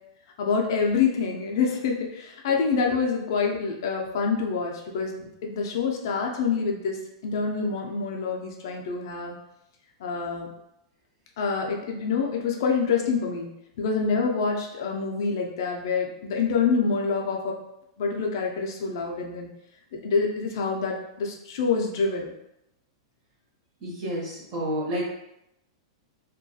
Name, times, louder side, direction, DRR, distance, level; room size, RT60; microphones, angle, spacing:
voice 1, 0.4-9.4 10.0-10.5 11.4-13.5 13.8-17.6 18.0-19.5 19.9-22.3, left 5 dB, 50° left, 0 dB, 0.4 m, -26 dB
voice 2, 23.8-25.1, equal, 30° right, -6 dB, 0.8 m, -30 dB
2.3 x 2.2 x 2.6 m, 0.83 s
supercardioid pair, 180°, 3 cm